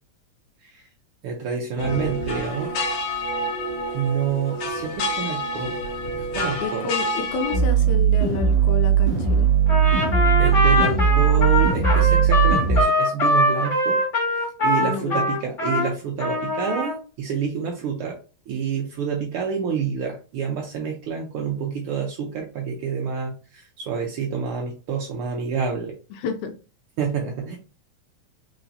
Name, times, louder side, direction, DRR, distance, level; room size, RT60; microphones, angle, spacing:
voice 1, 1.2-2.7 3.9-5.8 6.2-6.9 10.0-10.1 10.4-14.0 14.6-18.2 18.5-25.9 27.0-27.6, right 6 dB, 80° right, 1.2 m, -28 dB
sound 1, 1.8-7.6, left 1 dB, 65° left, 1.8 m, -28 dB
voice 2, 6.6-9.5 14.8-15.3 26.1-26.5, left 4 dB, 80° left, 1.9 m, -30 dB
sound 2, 7.5-12.8, right 8 dB, 20° right, 1.9 m, -18 dB
Trumpet, 9.7-15.9 16.2-17.0, left 2 dB, 30° left, 1.9 m, -22 dB
4.6 x 3.8 x 2.6 m
omnidirectional pair, 3.4 m